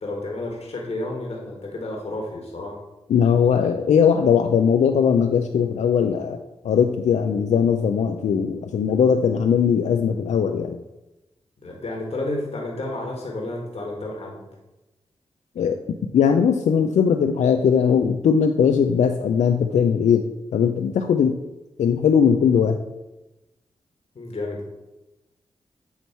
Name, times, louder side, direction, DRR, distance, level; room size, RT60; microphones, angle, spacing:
voice 1, 0.0-2.8 11.6-14.5 24.1-24.7, left 2 dB, 60° left, -1 dB, 1.4 m, -31 dB
voice 2, 3.1-6.4 6.6-10.8 15.6-15.8 16.1-20.3 20.5-21.4 21.8-22.8, left 7 dB, 75° left, 6 dB, 0.4 m, -19 dB
8.2 x 2.9 x 4.5 m, 1.0 s
supercardioid pair, 40°, 12 cm